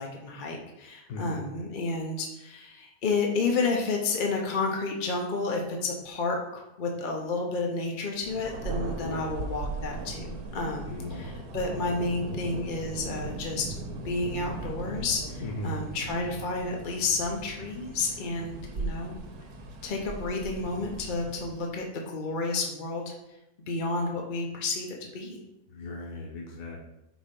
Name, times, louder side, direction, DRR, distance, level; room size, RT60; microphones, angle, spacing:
voice 1, 0.0-19.2 19.8-23.1 23.7-24.9 25.1-25.4, left 3 dB, 45° left, 0 dB, 0.7 m, -31 dB
voice 2, 1.1-1.5 9.0-9.3 10.9-11.4 15.4-15.8 25.7-26.9, left 1 dB, 90° left, -1 dB, 1.4 m, -37 dB
Thunder, 8.2-21.8, right 2 dB, 85° right, 1.4 m, -38 dB
5.2 x 4.3 x 5.2 m, 0.92 s
omnidirectional pair, 1.6 m